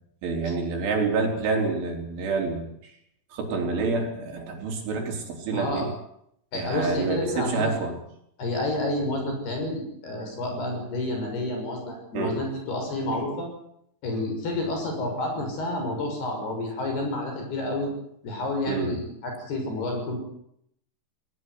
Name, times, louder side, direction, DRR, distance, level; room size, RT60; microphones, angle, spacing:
voice 1, 0.2-2.6 3.3-5.9 6.5-8.0 12.1-12.4 18.7-19.0, right 4 dB, 70° right, 3 dB, 6.3 m, -27 dB
voice 2, 5.5-5.9 6.5-7.8 8.4-13.5 14.0-17.9 18.2-20.2, left 1 dB, 55° left, 3 dB, 8.2 m, -29 dB
19.5 x 19.0 x 9.5 m, 0.73 s
omnidirectional pair, 5.7 m